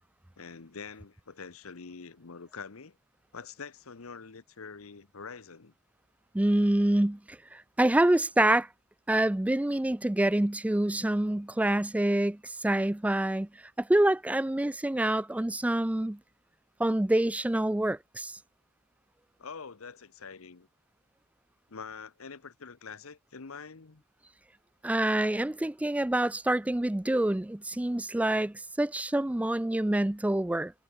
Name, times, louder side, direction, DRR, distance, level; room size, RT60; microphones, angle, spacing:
voice 1, 0.4-3.0 3.3-5.7 19.4-20.7 21.7-24.0, left 5 dB, 75° left, 1.0 m, -45 dB
voice 2, 6.3-8.7 9.1-13.5 13.8-16.2 16.8-18.4 24.8-30.7, right 1 dB, 5° right, 0.3 m, -26 dB
head